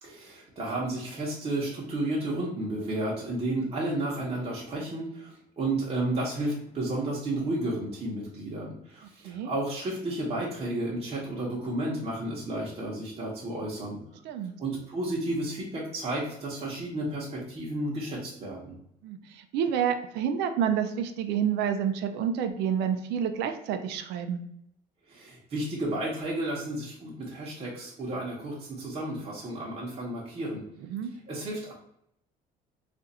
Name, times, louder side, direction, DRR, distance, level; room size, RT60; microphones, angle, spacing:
voice 1, 0.0-14.0 14.6-18.8 25.1-30.6 31.3-31.7, right 1 dB, 35° right, -5 dB, 0.9 m, -32 dB
voice 2, 19.0-24.4 30.9-31.1, right 8 dB, 85° right, 7 dB, 0.4 m, -29 dB
2.5 x 2.4 x 4.0 m, 0.74 s
cardioid pair, 110°, 17 cm